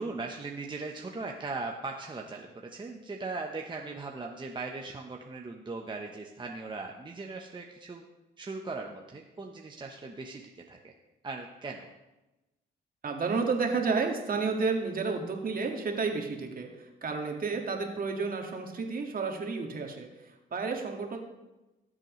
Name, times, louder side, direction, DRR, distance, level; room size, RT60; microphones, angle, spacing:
voice 1, 0.0-8.0 8.4-10.9 11.2-11.9, right 3 dB, 25° right, 1 dB, 1.0 m, -39 dB
voice 2, 13.0-21.2, right 4 dB, 45° right, 3 dB, 1.9 m, -31 dB
18.5 x 7.5 x 3.2 m, 1.0 s
cardioid pair, 90°, 20 cm